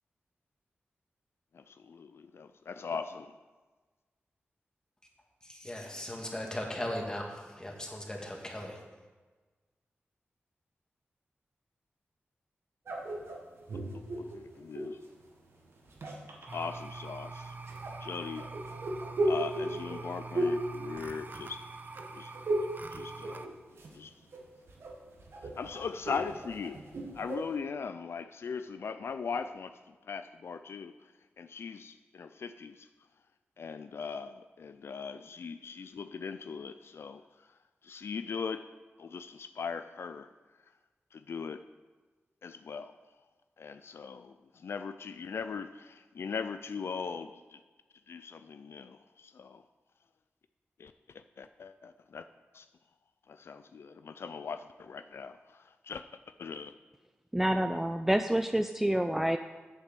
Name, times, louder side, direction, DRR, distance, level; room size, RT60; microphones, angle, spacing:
voice 1, 1.5-3.4 14.6-15.0 16.5-17.6 18.0-18.5 19.2-21.6 22.1-22.3 22.9-23.5 23.9-24.1 25.6-26.8 27.1-30.9 31.4-32.9 33.6-37.2 37.8-38.6 39.0-40.3 41.1-41.6 42.4-43.0 43.6-47.6 48.1-49.6 50.8-52.2 52.5-52.7 53.3-56.0 56.4-56.7, left 5 dB, 70° left, 10 dB, 0.3 m, -40 dB
voice 2, 5.4-8.8, left 1 dB, 15° left, 0 dB, 1.9 m, -38 dB
sound 1, 12.9-15.1 15.8-16.6 17.7-21.7 21.9-22.8 23.1-24.0 24.3-27.5, right 1 dB, 80° right, 1.5 m, -35 dB
sound 2, 16.5-23.5, right 3 dB, 45° right, 0.7 m, -44 dB
voice 3, 57.3-59.4, right 1 dB, 5° right, 7 dB, 0.3 m, -28 dB
8.1 x 6.7 x 6.7 m, 1.3 s
wide cardioid pair, 85°, 4 cm